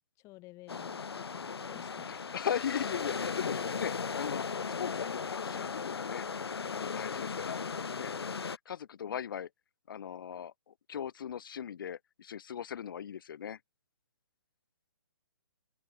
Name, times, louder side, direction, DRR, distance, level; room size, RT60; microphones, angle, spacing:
voice 1, 0.0-2.3 9.1-9.2, left 20 dB, 25° left, 5.9 m, -53 dB
sound 1, 0.7-8.6, left 5 dB, 80° left, 1.6 m, -37 dB
voice 2, 2.1-4.5 4.8-6.3 6.7-7.6 8.0-8.1 8.6-9.5 9.9-13.6, left 8 dB, 60° left, 1.6 m, -38 dB
hypercardioid pair, 145°, 13 cm